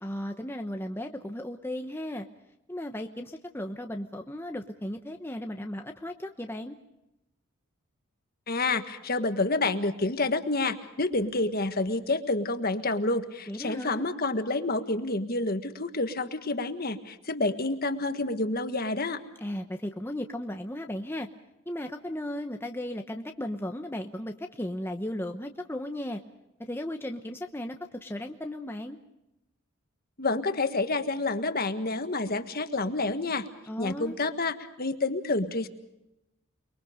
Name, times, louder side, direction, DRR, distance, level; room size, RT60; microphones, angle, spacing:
voice 1, 0.0-2.3 2.7-6.8 13.5-14.0 19.4-21.3 21.7-26.2 26.6-29.0 33.7-34.2, left 1 dB, 10° left, 4 dB, 0.9 m, -35 dB
voice 2, 8.5-19.2 30.2-33.5 33.8-35.7, left 2 dB, 45° left, 9 dB, 1.6 m, -28 dB
29.5 x 22.5 x 5.1 m, 0.89 s
head